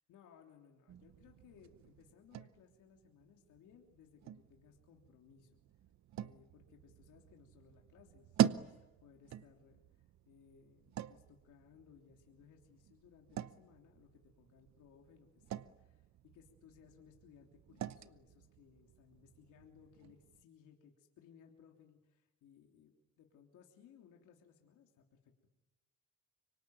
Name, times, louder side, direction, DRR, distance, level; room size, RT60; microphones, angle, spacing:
voice 1, 0.1-5.6 6.2-9.8 10.3-25.5, left 7 dB, 85° left, 1 dB, 3.2 m, -63 dB
sound 1, 0.9-20.4, right 10 dB, 65° right, 0.9 m, -44 dB
25.5 x 24.0 x 9.3 m, 1.1 s
cardioid pair, 90°, 30 cm